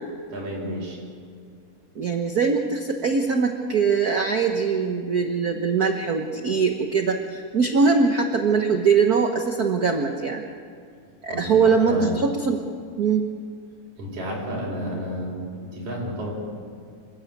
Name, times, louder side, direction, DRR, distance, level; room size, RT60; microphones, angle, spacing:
voice 1, 0.3-1.0 11.3-12.2 14.0-16.3, equal, 75° right, -3 dB, 6.3 m, -31 dB
voice 2, 1.9-10.4 11.2-12.6 13.0-13.2, right 5 dB, 60° right, 4 dB, 0.9 m, -22 dB
28.0 x 14.0 x 8.6 m, 2.1 s
omnidirectional pair, 3.4 m